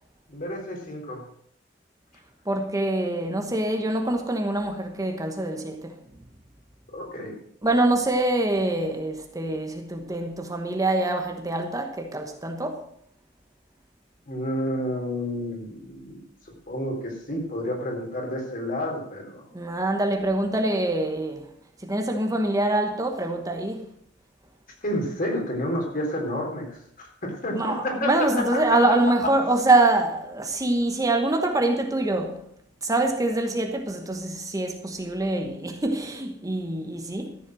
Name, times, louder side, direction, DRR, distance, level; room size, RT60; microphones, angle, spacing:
voice 1, 0.3-1.2 6.9-7.4 14.3-16.2 16.7-19.4 24.8-28.1 28.4-28.8, left 1 dB, 45° left, 3.7 m, -30 dB
voice 2, 2.5-6.0 7.6-12.8 19.5-21.5 21.8-23.9 27.5-32.4 32.8-37.4, right 2 dB, 20° right, 1.1 m, -25 dB
13.5 x 7.5 x 6.2 m
head